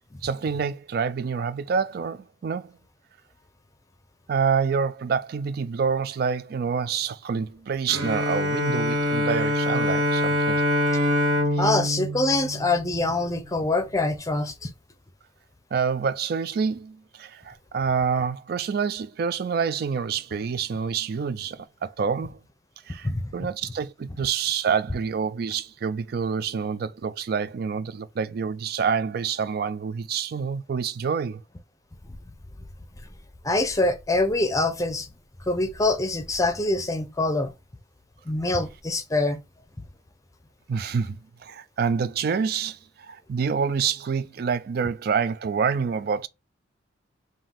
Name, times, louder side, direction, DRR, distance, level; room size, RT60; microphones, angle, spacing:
voice 1, 0.2-2.7 4.3-10.6 11.5-11.6 15.7-22.4 22.9-31.4 40.7-46.3, right 6 dB, 50° right, 0.3 m, -27 dB
Bowed string instrument, 7.9-13.3, left 1 dB, 80° right, 1.2 m, -25 dB
voice 2, 11.6-14.7 23.0-23.3 32.1-32.2 33.4-35.1 35.4-37.5 38.3-39.4, left 2 dB, 15° left, 0.6 m, -24 dB
3.7 x 2.6 x 3.7 m
head